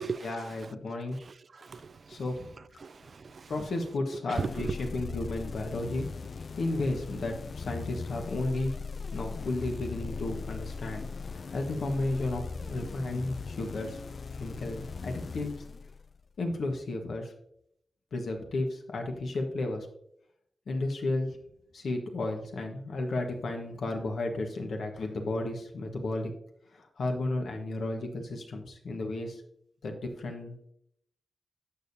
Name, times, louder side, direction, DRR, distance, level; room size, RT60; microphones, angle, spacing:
voice 1, 0.0-1.2 2.1-2.5 3.5-8.8 9.1-14.0 14.3-15.5 16.4-17.3 18.1-19.9 20.7-21.4 21.7-26.3 26.7-29.4 29.8-30.7, left 2 dB, 75° left, 1.3 m, -33 dB
voice 2, 1.3-2.2 2.8-3.5 4.3-4.8, right 5 dB, 60° right, 0.4 m, -36 dB
sound 1, 4.3-16.3, left 4 dB, 60° left, 0.3 m, -39 dB
11.0 x 7.1 x 2.7 m
cardioid pair, 50°, 0 cm